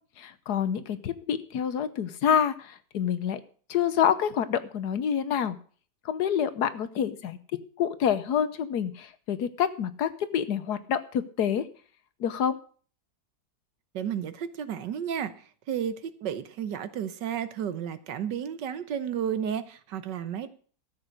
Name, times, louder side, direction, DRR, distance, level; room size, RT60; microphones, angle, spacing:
voice 1, 0.2-3.4 3.7-5.6 6.0-7.4 7.8-11.7 12.2-12.6, left 8 dB, 70° left, 13 dB, 1.4 m, -27 dB
voice 2, 13.9-15.3 15.7-20.5, right 8 dB, 75° right, 12 dB, 1.6 m, -32 dB
13.5 x 7.9 x 6.4 m, 0.43 s
omnidirectional pair, 1.9 m